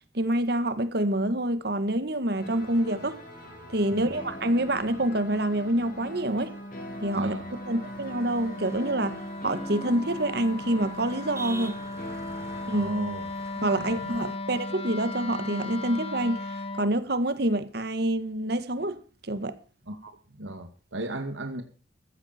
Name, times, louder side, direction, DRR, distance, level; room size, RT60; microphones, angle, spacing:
voice 1, 0.1-3.2 3.7-6.5 7.0-7.3 7.7-11.8 12.6-12.9 13.6-19.6, right 1 dB, 55° right, 1.7 m, -27 dB
sound 1, 2.4-12.6, left 1 dB, 45° left, 6.7 m, -43 dB
Wind instrument woodwind instrument, 4.0-16.9, left 2 dB, 30° left, 1.2 m, -38 dB
voice 2, 7.1-7.5 12.7-13.3 13.7-14.1 19.9-21.6, right 1 dB, 85° right, 2.4 m, -34 dB
sound 2, 7.9-14.4, right 1 dB, 15° right, 1.3 m, -47 dB
15.5 x 14.5 x 4.4 m
head